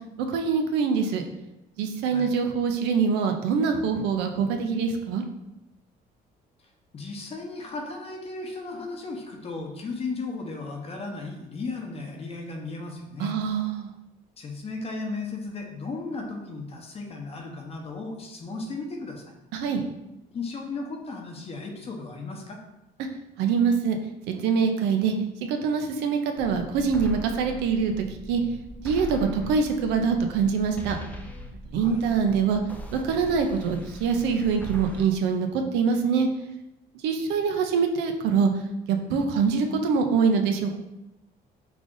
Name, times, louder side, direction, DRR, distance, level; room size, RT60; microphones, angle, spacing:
voice 1, 0.3-1.2 1.8-5.2 13.2-13.9 19.5-19.9 23.4-24.0 24.3-25.1 25.4-28.4 28.8-31.0 31.7-32.6 32.9-36.3 37.0-38.5 38.9-40.8, right 5 dB, 90° right, 5 dB, 0.5 m, -24 dB
voice 2, 6.9-13.4 14.4-19.3 20.3-22.6 31.7-32.0, left 3 dB, 35° left, 2 dB, 0.7 m, -35 dB
sound 1, 26.4-35.0, left 1 dB, 10° left, 0.4 m, -40 dB
3.3 x 2.5 x 3.7 m, 0.91 s
cardioid pair, 110°, 17 cm